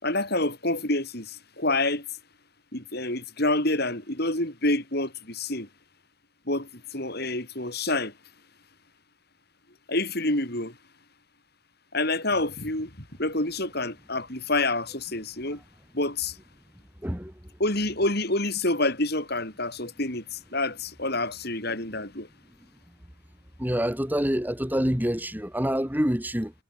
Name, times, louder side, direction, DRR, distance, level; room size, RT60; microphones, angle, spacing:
voice 1, 0.0-2.1 2.7-5.7 6.5-8.1 9.9-10.8 11.9-15.6 15.9-16.4 17.6-22.3, left 2 dB, 50° left, 6.1 m, -28 dB
voice 2, 17.0-17.3 23.6-26.5, equal, 10° right, 1.8 m, -26 dB
head